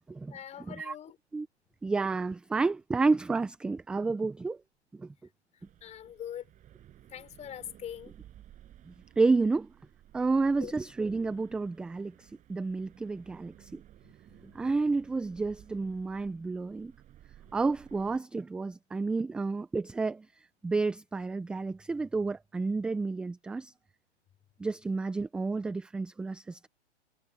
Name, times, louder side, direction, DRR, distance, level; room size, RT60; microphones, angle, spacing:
voice 1, 0.3-1.2 5.5-6.5 7.1-8.1 10.5-10.7, left 10 dB, 20° left, 5.4 m, -43 dB
voice 2, 1.8-4.6 5.0-5.1 9.2-9.7 10.1-13.8 14.5-16.9 17.5-20.3 20.6-23.7 24.6-26.7, right 3 dB, 5° right, 0.4 m, -30 dB
sound 1, 5.6-18.2, right 12 dB, 20° right, 7.2 m, -56 dB
hypercardioid pair, 130°, 35 cm